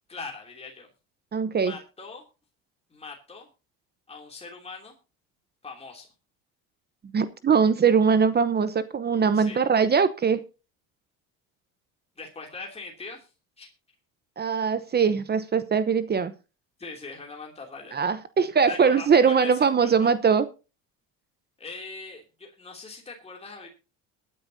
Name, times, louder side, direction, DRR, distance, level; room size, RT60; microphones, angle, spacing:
voice 1, 0.1-0.9 1.5-2.2 2.9-3.5 4.1-5.0 5.6-6.1 9.3-9.7 12.2-13.3 13.6-13.7 16.8-18.0 18.7-20.1 21.6-23.7, left 4 dB, 20° left, 0 dB, 3.0 m, -41 dB
voice 2, 1.3-1.7 7.1-10.4 14.4-16.3 17.9-20.5, right 6 dB, 30° right, 13 dB, 1.0 m, -21 dB
22.0 x 9.6 x 2.8 m, 0.32 s
supercardioid pair, 95°, 34 cm